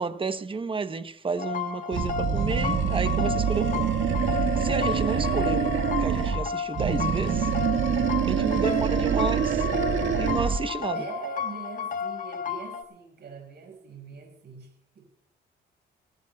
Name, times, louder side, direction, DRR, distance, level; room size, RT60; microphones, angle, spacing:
voice 1, 0.0-3.9 4.6-7.5 8.3-9.5 10.2-11.1, right 4 dB, 25° right, 1.0 m, -31 dB
sound 1, 1.4-12.8, left 7 dB, 40° left, 1.4 m, -32 dB
Animal, 1.9-6.4 6.7-10.7, right 8 dB, 75° right, 1.8 m, -25 dB
voice 2, 8.6-9.2 10.9-15.1, right 5 dB, 55° right, 5.6 m, -42 dB
26.0 x 13.5 x 2.4 m
cardioid pair, 90°, 20 cm